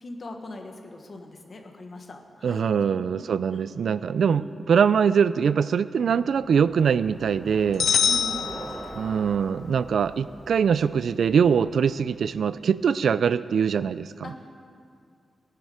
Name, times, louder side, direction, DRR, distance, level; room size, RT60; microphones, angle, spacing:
voice 1, 0.0-2.6 2.9-3.1 3.5-3.7 4.3-4.5 8.0-8.8 14.2-14.6, left 2 dB, 40° left, 3 dB, 1.3 m, -41 dB
voice 2, 2.4-7.9 9.0-14.1, right 7 dB, 75° right, 16 dB, 0.3 m, -23 dB
Bicycle, 6.2-12.7, right 2 dB, 20° right, 0.5 m, -43 dB
sound 1, 7.8-9.4, left 7 dB, 75° left, 0.5 m, -25 dB
18.0 x 10.5 x 5.0 m, 2.4 s
wide cardioid pair, 170°, 0 cm